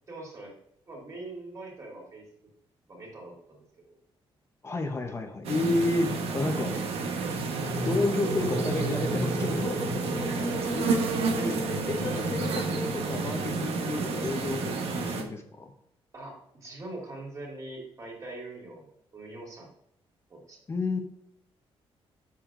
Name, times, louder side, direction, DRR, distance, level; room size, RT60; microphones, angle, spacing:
voice 1, 0.1-0.6 0.9-2.3 2.9-4.0 6.7-6.9 10.1-11.0 16.1-19.7 20.3-20.6, right 2 dB, 30° right, -2 dB, 2.6 m, -43 dB
voice 2, 4.6-6.7 7.8-10.0 10.7-10.8 11.4-15.7 20.7-21.0, left 2 dB, 25° left, 5 dB, 0.8 m, -31 dB
sound 1, 5.4-15.2, right 4 dB, 80° right, 1.1 m, -31 dB
sound 2, 7.4-13.6, right 1 dB, 50° right, 2.4 m, -33 dB
7.4 x 7.1 x 2.5 m, 0.72 s
wide cardioid pair, 165°, 10 cm